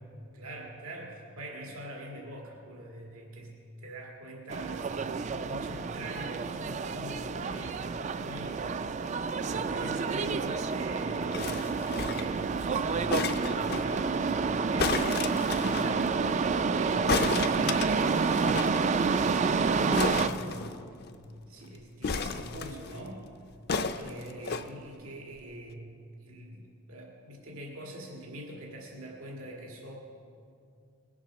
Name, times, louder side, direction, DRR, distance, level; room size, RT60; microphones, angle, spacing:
voice 1, 0.3-3.5 3.8-8.7 9.4-16.1 16.7-20.8 21.5-23.2 24.0-30.0, right 1 dB, 90° right, -1 dB, 1.9 m, -43 dB
sound 1, 4.5-20.3, right 5 dB, 35° right, 0.3 m, -29 dB
sound 2, 11.3-12.4 13.1-13.8 14.8-15.9 17.1-18.8 19.0-19.1 19.3-19.5 19.9-21.1 22.0-23.0 23.7-24.7 25.4-25.5, left 4 dB, 50° left, 0.5 m, -33 dB
21.0 x 7.2 x 5.9 m, 2.4 s
head